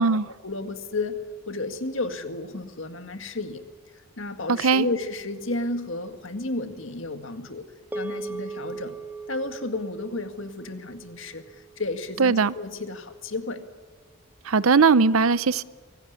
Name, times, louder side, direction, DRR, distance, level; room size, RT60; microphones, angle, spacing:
voice 1, 0.0-3.6 3.9-7.7 7.9-9.0 9.3-13.6, left 2 dB, 65° left, 1.9 m, -32 dB
voice 2, 4.5-4.9 12.2-12.5 14.5-15.6, right 5 dB, 75° right, 0.7 m, -19 dB
sound 1, 7.9-12.4, right 3 dB, 10° right, 1.4 m, -39 dB
24.0 x 17.5 x 9.6 m
head